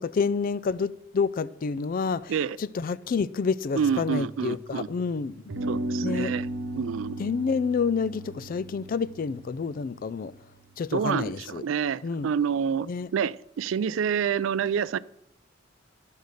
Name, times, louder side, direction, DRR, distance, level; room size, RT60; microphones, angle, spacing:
voice 1, 0.0-2.3 2.6-5.4 6.0-6.3 7.2-10.3 10.8-11.6 12.0-12.3 12.9-13.1, left 5 dB, 45° left, 0.4 m, -28 dB
voice 2, 3.7-4.9 5.7-6.5 6.8-7.2 10.9-12.9 13.1-15.0, right 7 dB, 85° right, 0.4 m, -27 dB
sound 1, 3.8-5.0 5.5-10.7, right 1 dB, 65° right, 0.9 m, -36 dB
12.0 x 5.3 x 6.4 m
head